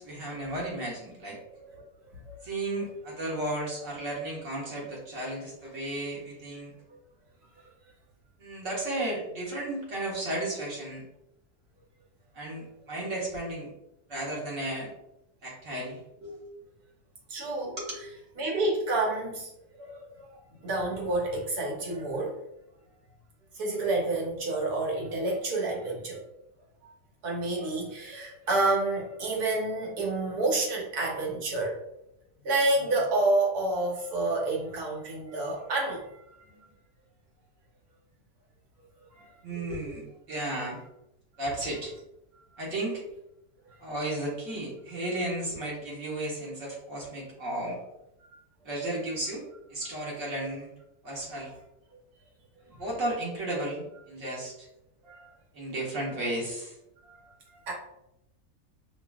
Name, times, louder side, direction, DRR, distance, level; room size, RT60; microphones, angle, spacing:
voice 1, 0.0-1.4 2.4-6.7 8.4-11.0 12.3-13.7 14.1-14.9 15.4-16.4 17.8-17.9 39.4-40.8 41.4-41.9 42.6-43.0 43.8-47.8 48.6-50.7 51.0-51.5 52.7-54.7 55.5-56.7, right 1 dB, 55° right, -4 dB, 1.6 m, -34 dB
voice 2, 17.3-17.8 18.4-19.5 19.8-22.4 23.5-26.2 26.8-26.9 27.2-31.7 32.4-36.7 39.1-39.3 43.7-43.8 55.0-55.3 57.0-57.1 57.5-57.7, right 2 dB, 90° right, -2 dB, 1.6 m, -29 dB
5.3 x 2.7 x 2.3 m, 0.85 s
omnidirectional pair, 1.6 m